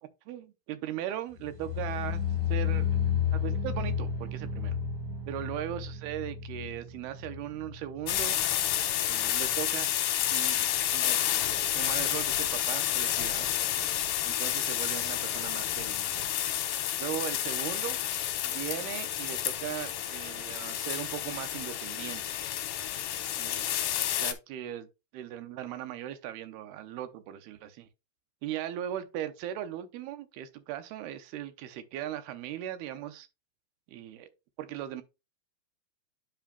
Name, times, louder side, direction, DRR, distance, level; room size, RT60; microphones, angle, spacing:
voice 1, 0.3-2.2 2.5-3.0 3.3-4.8 5.3-8.4 9.1-9.9 10.3-10.7 10.9-11.2 11.8-13.5 14.2-16.2 17.0-18.0 18.4-22.4 23.4-23.7 24.2-24.9 25.1-27.9 28.4-33.3 33.9-34.3 34.6-35.0, right 11 dB, 85° right, 2.7 m, -38 dB
sound 1, 1.4-8.5 8.7-9.2 9.5-9.6, left 7 dB, 60° right, 3.6 m, -32 dB
sound 2, 8.1-24.3, left 11 dB, 75° left, 2.4 m, -30 dB
10.5 x 5.0 x 2.3 m
omnidirectional pair, 4.6 m